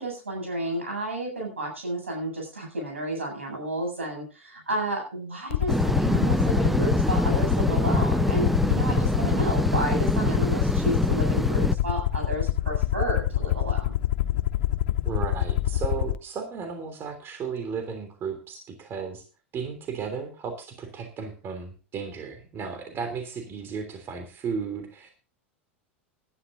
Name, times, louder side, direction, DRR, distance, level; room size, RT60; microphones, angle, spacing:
voice 1, 0.0-14.0, right 1 dB, 85° right, 1 dB, 8.0 m, -31 dB
Aircraft, 5.5-16.2, left 13 dB, 65° left, 0.6 m, -26 dB
sound 1, 5.7-11.8, right 1 dB, ahead, 0.5 m, -25 dB
voice 2, 15.0-19.2 19.5-25.1, right 6 dB, 35° right, 6 dB, 3.2 m, -34 dB
19.5 x 12.0 x 2.7 m, 0.34 s
figure-of-eight pair, 90°, 7 cm